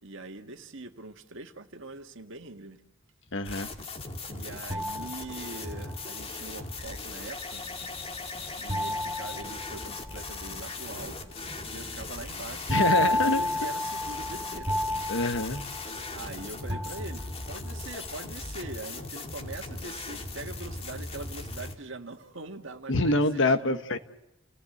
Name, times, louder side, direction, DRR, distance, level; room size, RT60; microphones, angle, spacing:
voice 1, 0.0-2.8 4.3-7.7 8.6-11.3 11.7-14.7 16.1-23.8, right 2 dB, 65° right, 5 dB, 1.8 m, -43 dB
voice 2, 3.3-3.7 12.7-13.4 15.1-15.7 22.9-24.0, left 2 dB, 65° left, 8 dB, 1.4 m, -25 dB
sound 1, 3.4-21.7, left 3 dB, 30° left, 2.2 m, -39 dB
sound 2, 4.7-5.9 8.7-10.3 12.7-16.3 16.7-17.6, left 1 dB, 20° right, 1.7 m, -31 dB
sound 3, 7.5-16.4 17.2-17.3, right 1 dB, 45° right, 3.2 m, -53 dB
29.5 x 18.0 x 8.0 m, 0.91 s
head